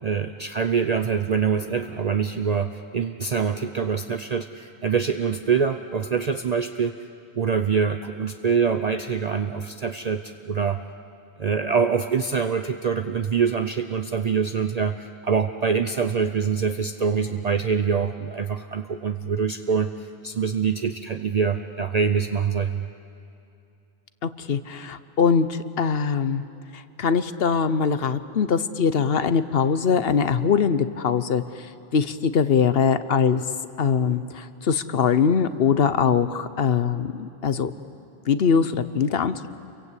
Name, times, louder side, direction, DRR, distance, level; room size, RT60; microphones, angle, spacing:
voice 1, 0.0-7.0 7.3-10.8 11.4-22.9, right 6 dB, 45° right, 7 dB, 0.7 m, -25 dB
voice 2, 24.2-26.4 26.7-33.4 33.8-37.7 38.3-39.5, left 6 dB, 70° left, 13 dB, 1.1 m, -22 dB
29.0 x 23.0 x 8.3 m, 2.7 s
omnidirectional pair, 1.0 m